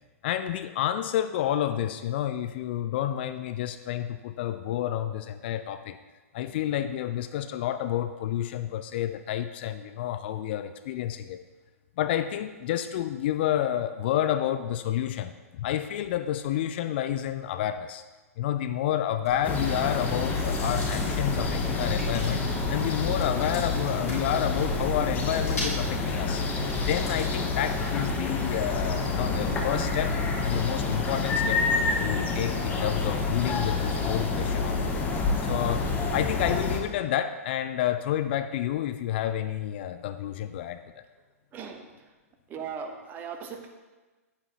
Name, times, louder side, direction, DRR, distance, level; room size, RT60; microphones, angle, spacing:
voice 1, 0.2-6.0 6.3-11.4 12.0-18.0 18.4-22.4 22.7-26.4 26.9-30.1 30.4-31.6 32.0-41.0, left 11 dB, 45° left, 11 dB, 0.4 m, -30 dB
Chewing mastication, 19.2-27.4, left 1 dB, 75° left, 3.0 m, -39 dB
sound 1, 19.4-36.8, left 3 dB, 20° left, 1.0 m, -28 dB
voice 2, 41.5-41.9 42.5-43.7, right 6 dB, 25° right, 4 dB, 0.9 m, -38 dB
9.7 x 8.5 x 2.9 m, 1.2 s
figure-of-eight pair, 110°, 8 cm